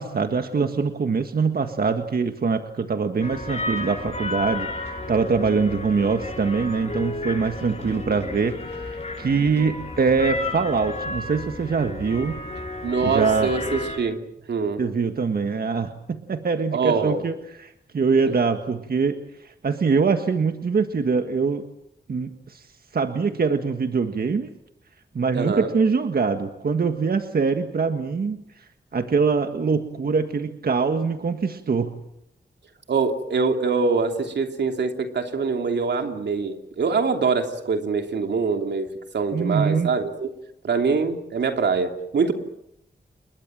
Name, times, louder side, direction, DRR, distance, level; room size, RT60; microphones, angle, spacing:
voice 1, 0.0-12.4 13.0-13.5 14.8-17.3 17.6-21.6 22.1-22.7 22.9-24.5 25.2-32.0 39.3-39.9, right 5 dB, 60° right, 7 dB, 1.7 m, -23 dB
sound 1, 3.2-14.0, left 2 dB, 40° left, 7.6 m, -32 dB
voice 2, 12.8-14.2 14.5-14.8 16.7-17.2 18.2-18.3 25.3-25.7 32.9-38.9 39.1-40.3 40.6-42.3, right 4 dB, 85° right, 5 dB, 3.0 m, -24 dB
29.5 x 22.0 x 7.7 m, 0.77 s
wide cardioid pair, 85°, 18 cm